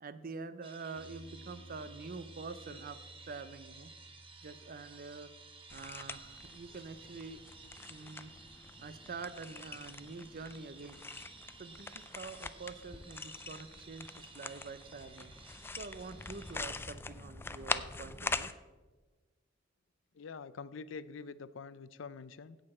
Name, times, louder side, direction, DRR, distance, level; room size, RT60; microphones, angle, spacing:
voice 1, 0.0-3.9 4.4-5.3 5.7-7.4 7.9-8.3 8.8-11.0 11.6-15.3 15.8-18.5, right 4 dB, 45° right, 13 dB, 0.6 m, -46 dB
sound 1, 0.6-16.6, right 4 dB, 30° right, 1.2 m, -55 dB
sound 2, 0.9-11.2, right 1 dB, 45° left, 1.4 m, -59 dB
sound 3, 5.7-18.5, left 3 dB, 10° left, 0.3 m, -43 dB
voice 2, 20.1-22.6, left 5 dB, 75° left, 16 dB, 0.5 m, -46 dB
16.5 x 6.6 x 4.3 m, 1.3 s
head